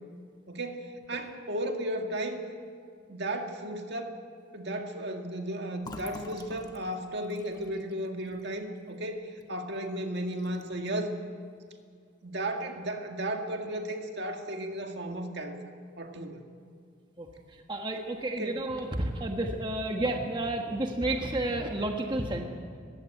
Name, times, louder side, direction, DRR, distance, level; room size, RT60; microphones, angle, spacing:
voice 1, 0.5-2.4 3.1-4.2 4.5-11.2 12.2-15.6 16.0-16.4 18.4-18.6, right 1 dB, 55° right, 4 dB, 2.0 m, -34 dB
Fill (with liquid), 5.8-9.5 9.8-10.0 10.3-10.9, left 1 dB, 20° left, 1.2 m, -47 dB
voice 2, 17.2-22.4, right 1 dB, 25° right, 2 dB, 1.3 m, -31 dB
20.5 x 16.0 x 9.1 m, 2.2 s
head